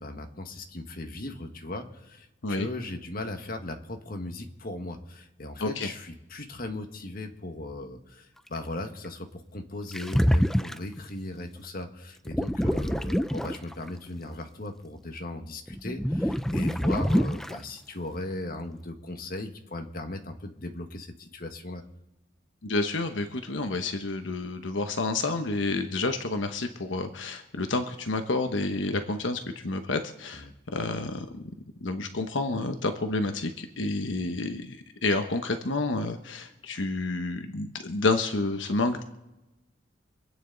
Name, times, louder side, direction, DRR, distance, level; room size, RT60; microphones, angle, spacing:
voice 1, 0.0-21.8 30.3-30.5, left 2 dB, 50° left, 5 dB, 1.5 m, -38 dB
sound 1, 9.9-11.0 12.3-13.9 15.7-17.6, equal, ahead, 0.4 m, -26 dB
voice 2, 22.6-30.4 30.7-31.3 31.8-39.0, left 3 dB, 85° left, 7 dB, 1.1 m, -29 dB
26.0 x 9.3 x 4.0 m, 0.96 s
head